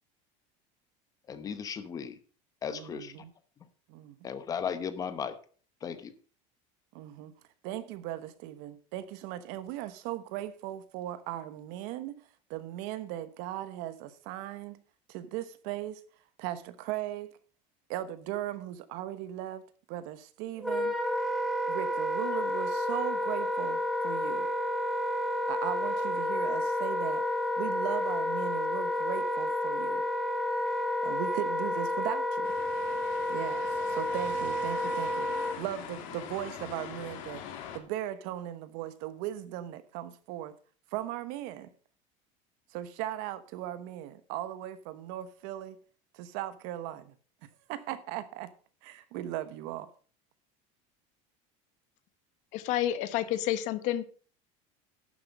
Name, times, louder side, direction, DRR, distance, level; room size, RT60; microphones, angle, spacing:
voice 1, 1.3-2.2 2.6-3.1 4.2-5.4 5.8-6.1, left 7 dB, 20° left, 0.9 m, -35 dB
voice 2, 2.7-3.3 3.9-4.3 6.9-7.3 7.6-14.8 15.1-16.0 16.4-17.3 17.9-19.6 19.9-20.9 21.7-24.5 25.5-27.2 27.6-30.1 31.0-32.5 33.3-37.4 37.7-40.5 40.9-41.7 42.7-45.8 46.1-47.1 47.7-48.5 48.8-49.9, right 13 dB, 60° right, 1.1 m, -38 dB
Wind instrument woodwind instrument, 20.6-35.6, left 1 dB, ahead, 1.3 m, -30 dB
sound 1, 32.4-37.8, left 9 dB, 90° left, 2.6 m, -44 dB
voice 3, 52.5-54.0, left 12 dB, 50° left, 1.0 m, -29 dB
11.5 x 7.6 x 5.4 m
cardioid pair, 175°, 16 cm